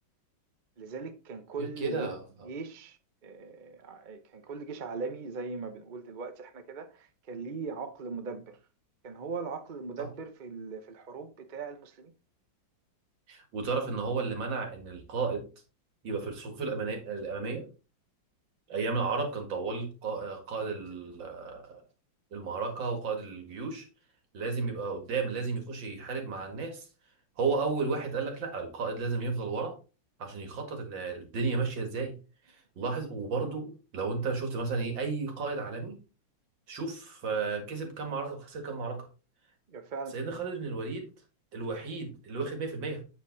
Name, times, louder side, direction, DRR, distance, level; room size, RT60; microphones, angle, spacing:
voice 1, 0.8-2.2 2.4-3.0 3.2-8.6 9.0-12.1 39.7-40.2, right 4 dB, 45° right, 0.6 m, -39 dB
voice 2, 1.6-2.2 13.3-15.5 16.0-17.7 18.7-21.8 22.3-23.9 24.3-26.9 27.4-29.8 30.2-32.1 32.8-36.0 36.7-39.1 40.1-41.1 41.5-43.0, right 4 dB, 70° right, 2.6 m, -33 dB
8.4 x 5.2 x 3.9 m
omnidirectional pair, 2.1 m